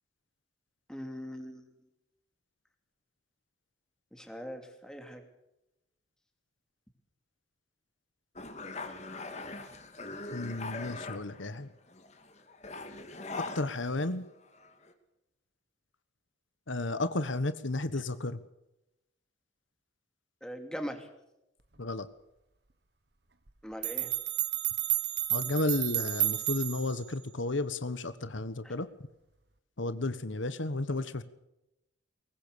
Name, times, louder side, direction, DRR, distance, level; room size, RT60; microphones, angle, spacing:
voice 1, 0.9-1.6 4.1-5.2 20.4-21.1 23.6-24.1 28.6-28.7, equal, 5° left, 5 dB, 2.9 m, -41 dB
sound 1, 8.4-11.6 11.9-14.3 14.5-14.9, left 3 dB, 35° left, 2.3 m, -41 dB
voice 2, 10.3-11.7 13.5-14.2 16.7-18.4 21.8-22.1 25.3-28.9 29.8-31.2, left 2 dB, 85° left, 13 dB, 1.4 m, -33 dB
sound 2, 23.5-23.6 23.8-27.0, right 15 dB, 60° right, 1.5 m, -31 dB
22.5 x 19.5 x 6.9 m, 0.88 s
head